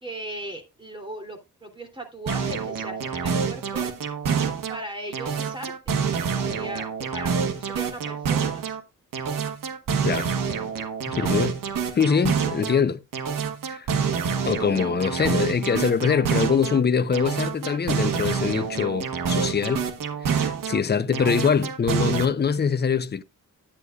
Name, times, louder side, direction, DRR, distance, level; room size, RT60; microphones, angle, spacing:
voice 1, 0.0-3.9 4.7-5.9 6.3-8.8 11.1-11.4, right 1 dB, 15° right, 3.0 m, -38 dB
sound 1, 2.3-4.8 5.1-8.8 9.1-12.8 13.1-16.8 17.1-20.8 21.1-22.2, right 6 dB, 85° right, 1.4 m, -27 dB
voice 2, 11.1-11.6 11.9-13.0 13.7-13.9 14.4-19.9 20.2-23.2, left 6 dB, 30° left, 0.7 m, -23 dB
10.0 x 9.3 x 2.4 m
cardioid pair, 95°, 32 cm